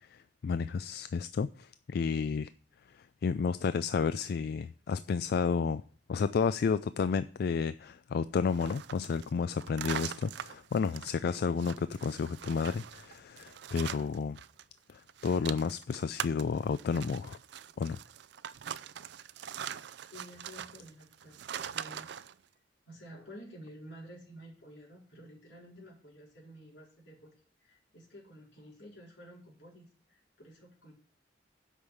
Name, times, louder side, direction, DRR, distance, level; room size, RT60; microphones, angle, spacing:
voice 1, 0.1-2.5 2.9-5.8 6.1-14.4 14.9-17.4 17.8-18.0, left 5 dB, 60° left, 0.3 m, -31 dB
sound 1, 8.5-14.6 14.9-22.3, right 9 dB, 65° right, 0.4 m, -42 dB
voice 2, 20.1-22.1 22.9-27.3 27.6-30.9, equal, 80° left, 4.4 m, -51 dB
8.1 x 5.6 x 7.0 m
head